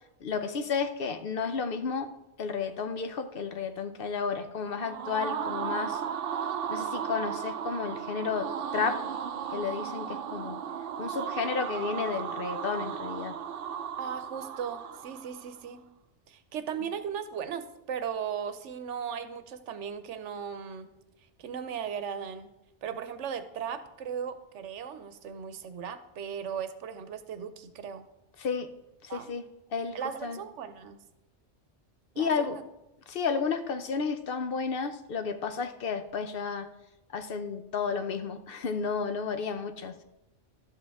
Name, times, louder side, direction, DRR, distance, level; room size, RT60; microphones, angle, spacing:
voice 1, 0.2-2.1 2.4-6.0 6.7-9.0 9.5-10.6 11.0-13.3 28.4-28.7 29.0-29.4 29.7-30.4 32.2-32.6 33.1-36.7 37.1-40.0, left 5 dB, 60° left, 8 dB, 0.8 m, -32 dB
sound 1, 4.7-15.5, right 8 dB, 60° right, 0.7 m, -35 dB
voice 2, 14.0-15.8 16.3-20.9 21.4-22.5 22.8-28.1 29.1-29.3 29.9-31.0 32.1-32.6, right 7 dB, 85° right, 11 dB, 1.0 m, -37 dB
12.0 x 7.6 x 3.5 m, 0.94 s
omnidirectional pair, 1.2 m